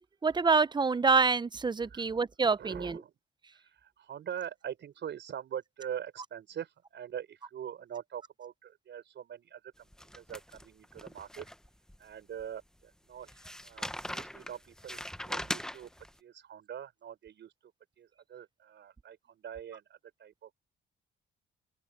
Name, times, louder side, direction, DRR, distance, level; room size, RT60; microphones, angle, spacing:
voice 1, 0.2-3.0, right 4 dB, 20° right, 0.7 m, -26 dB
voice 2, 2.6-3.1 3.5-9.9 10.2-11.5 12.0-13.3 13.6-15.9 16.2-17.5 18.0-20.5, right 9 dB, 65° right, 5.3 m, -43 dB
sound 1, 9.9-12.0 12.4-12.5 13.3-16.1, equal, 5° left, 1.2 m, -40 dB
open air
cardioid pair, 90°, 20 cm